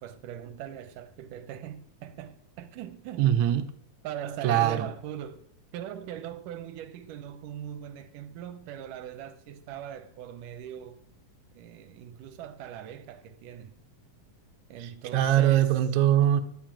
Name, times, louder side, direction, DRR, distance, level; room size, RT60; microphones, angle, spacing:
voice 1, 0.0-3.3 4.0-5.5 5.7-11.0 11.5-13.7 14.7-15.8, right 10 dB, 85° right, 2.3 m, -40 dB
voice 2, 3.2-3.7 4.4-4.9 14.8-16.4, right 11 dB, 70° right, 2.2 m, -22 dB
10.5 x 7.5 x 8.9 m
omnidirectional pair, 3.7 m